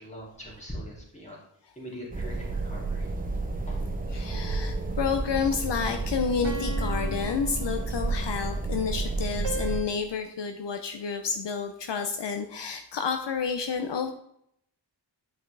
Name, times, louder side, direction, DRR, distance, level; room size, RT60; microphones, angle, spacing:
voice 1, 0.0-1.4 1.8-3.1 3.7-3.8, equal, 15° left, -3 dB, 2.7 m, -41 dB
sound 1, 2.1-9.8, right 3 dB, 20° right, 0.9 m, -31 dB
voice 2, 4.1-14.1, left 6 dB, 70° left, 6 dB, 0.7 m, -30 dB
sound 2, 4.3-5.3 6.4-8.3 9.4-9.9, equal, 90° right, 1.5 m, -39 dB
9.3 x 5.5 x 3.3 m, 0.72 s
wide cardioid pair, 115°, 44 cm